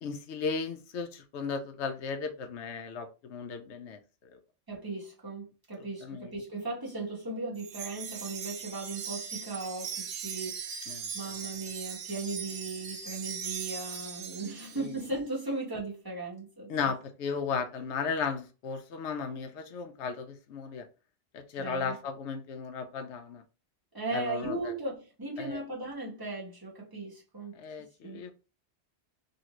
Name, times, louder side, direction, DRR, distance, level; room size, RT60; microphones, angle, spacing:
voice 1, 0.0-4.0 4.3-4.4 6.0-6.3 10.9-11.1 14.8-14.9 16.7-20.9 21.3-23.4 24.1-24.7 25.4-25.6 27.5-28.3, left 5 dB, 75° left, 0.9 m, -35 dB
voice 2, 4.7-16.7 21.6-22.0 23.9-27.6 28.0-28.2, right 2 dB, 20° right, 1.2 m, -37 dB
Wind chime, 7.6-15.1, right 7 dB, 75° right, 0.8 m, -39 dB
2.8 x 2.5 x 2.9 m
omnidirectional pair, 1.2 m